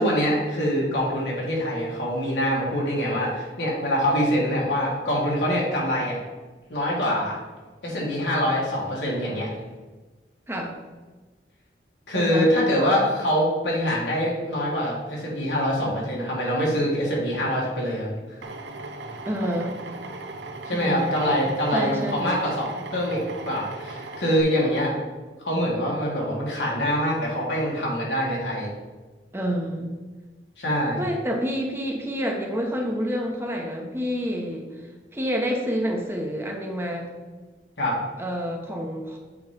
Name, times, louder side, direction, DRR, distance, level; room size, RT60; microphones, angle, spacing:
voice 1, 0.0-6.2 6.7-7.4 7.8-9.5 12.1-18.1 20.7-24.9 25.4-28.7 30.6-31.0 37.8-38.0, equal, 85° left, -4 dB, 2.3 m, -24 dB
voice 2, 12.1-12.5 19.3-19.7 20.7-21.1 21.7-22.4 29.3-29.9 31.0-34.7 35.1-37.1 38.2-39.2, equal, 15° right, 1 dB, 0.8 m, -28 dB
Drill, 18.4-24.4, right 2 dB, 80° right, 0.6 m, -37 dB
8.0 x 3.1 x 5.2 m, 1.3 s
head